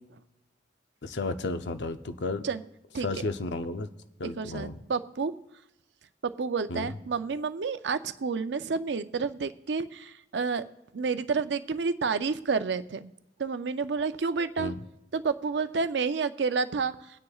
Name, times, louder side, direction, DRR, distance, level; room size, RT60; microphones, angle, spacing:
voice 1, 1.0-2.4 3.0-3.9 4.2-4.8 6.7-6.9 14.6-14.8, left 3 dB, 85° left, 9 dB, 0.7 m, -33 dB
voice 2, 4.2-5.3 6.2-10.6 10.9-13.1 13.4-14.7 15.1-17.0, right 5 dB, 80° right, 11 dB, 0.5 m, -30 dB
21.5 x 9.6 x 2.4 m, 0.87 s
head